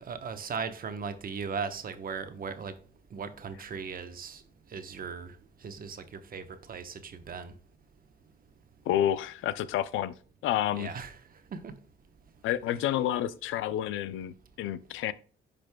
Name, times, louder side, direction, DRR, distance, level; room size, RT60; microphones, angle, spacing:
voice 1, 0.0-2.7 3.1-4.4 4.7-5.3 5.6-7.5 10.7-11.2 11.5-11.7, right 5 dB, 45° right, 1.0 m, -38 dB
voice 2, 8.9-10.1 10.4-10.9 12.4-15.1, left 11 dB, 85° left, 0.5 m, -29 dB
10.5 x 5.1 x 2.2 m
cardioid pair, 90°, 20 cm